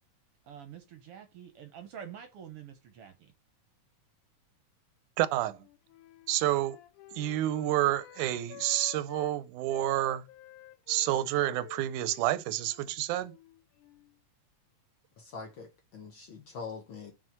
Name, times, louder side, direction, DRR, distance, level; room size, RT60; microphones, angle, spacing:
voice 1, 0.5-3.3, right 8 dB, 65° right, 1.6 m, -47 dB
voice 2, 5.2-5.6 6.3-6.8 7.2-10.3 10.9-13.4, right 14 dB, 90° right, 2.1 m, -29 dB
Wind instrument woodwind instrument, 5.4-9.4 9.7-14.2, left 14 dB, 85° left, 2.2 m, -50 dB
voice 3, 15.2-17.1, left 5 dB, 55° left, 1.5 m, -43 dB
6.2 x 4.7 x 5.8 m
omnidirectional pair, 3.5 m